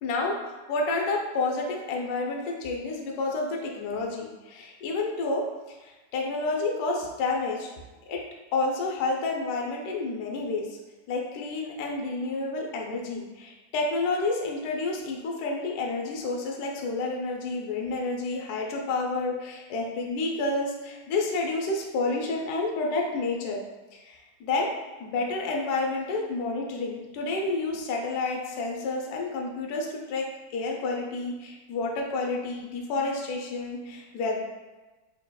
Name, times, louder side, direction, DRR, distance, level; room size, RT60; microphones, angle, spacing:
voice 1, 0.0-5.4 5.8-7.7 8.1-8.2 8.5-10.7 11.1-23.6 23.9-24.7 25.0-34.4, left 3 dB, 70° left, 0 dB, 1.0 m, -30 dB
5.5 x 2.9 x 2.2 m, 1.2 s
omnidirectional pair, 2.1 m